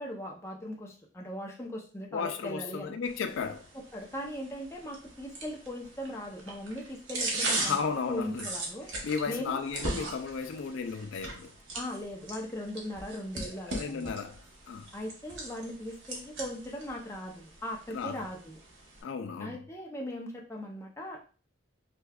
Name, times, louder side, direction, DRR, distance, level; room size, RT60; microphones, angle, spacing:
voice 1, 0.0-3.0 3.7-8.9 9.3-9.6 9.9-10.1 11.7-14.1 14.9-18.6 19.4-21.3, equal, 15° left, 0.6 m, -39 dB
voice 2, 2.1-3.7 7.6-8.5 9.0-11.5 13.4-14.9 17.9-18.2 19.0-19.6, left 5 dB, 85° left, 0.4 m, -34 dB
sound 1, 3.1-19.0, right 2 dB, 85° right, 1.0 m, -39 dB
4.9 x 2.3 x 2.3 m
head